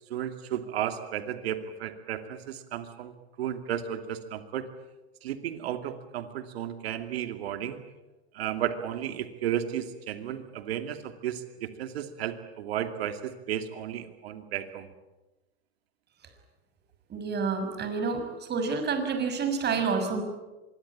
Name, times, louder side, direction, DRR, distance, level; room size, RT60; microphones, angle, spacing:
voice 1, 0.1-3.1 3.4-4.7 5.2-7.8 8.3-14.9, right 10 dB, 75° right, 9 dB, 2.6 m, -33 dB
voice 2, 17.1-18.2 18.5-20.2, right 5 dB, 30° right, 7 dB, 6.4 m, -28 dB
25.5 x 22.0 x 8.7 m, 1.1 s
hypercardioid pair, 95°, 31 cm